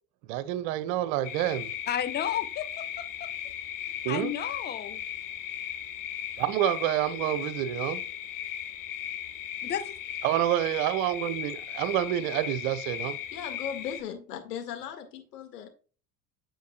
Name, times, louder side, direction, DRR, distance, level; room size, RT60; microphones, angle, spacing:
voice 1, 0.2-1.7 4.0-4.3 6.4-8.0 10.2-13.2, right 12 dB, 55° right, 1.0 m, -28 dB
sound 1, 1.2-14.0, left 10 dB, 40° left, 1.4 m, -37 dB
voice 2, 1.9-3.3 4.1-5.0 9.6-10.0, left 10 dB, 20° left, 0.7 m, -32 dB
voice 3, 13.3-15.7, left 8 dB, 75° left, 1.9 m, -37 dB
9.3 x 7.2 x 2.2 m
figure-of-eight pair, 75°, 48 cm